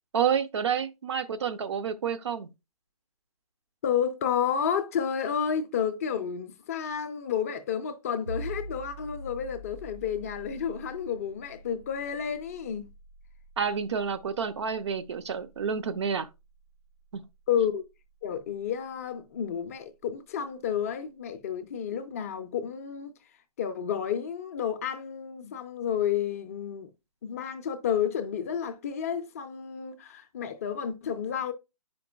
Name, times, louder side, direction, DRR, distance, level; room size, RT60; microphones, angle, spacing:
voice 1, 0.1-2.5 13.6-16.3 17.1-17.2, right 7 dB, 50° right, 0.6 m, -29 dB
voice 2, 3.8-12.9 17.5-17.9 18.2-23.1 23.6-26.9 27.2-31.5, left 8 dB, 25° left, 0.4 m, -31 dB
sound 1, 8.3-19.7, right 1 dB, 90° right, 2.0 m, -46 dB
9.0 x 5.1 x 2.3 m
figure-of-eight pair, 135°, 19 cm